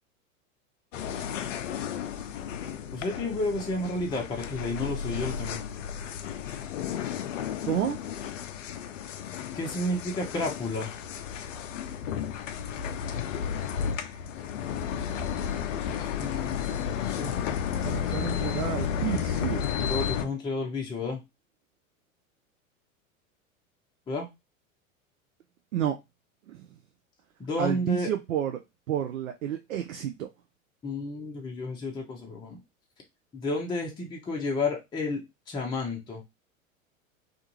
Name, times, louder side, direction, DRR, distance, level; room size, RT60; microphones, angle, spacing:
sound 1, 0.9-20.3, left 8 dB, 65° left, 0.5 m, -33 dB
voice 1, 2.9-5.6 9.5-11.0 16.2-17.3 19.7-21.2 24.1-24.3 27.4-28.1 30.8-32.6 33.3-36.2, left 2 dB, 10° left, 0.6 m, -31 dB
voice 2, 7.6-8.0 17.8-19.6 25.7-26.0 26.5-26.6 27.6-28.6 28.9-30.3, right 10 dB, 75° right, 0.5 m, -30 dB
2.5 x 2.4 x 2.9 m
figure-of-eight pair, 90°, 41 cm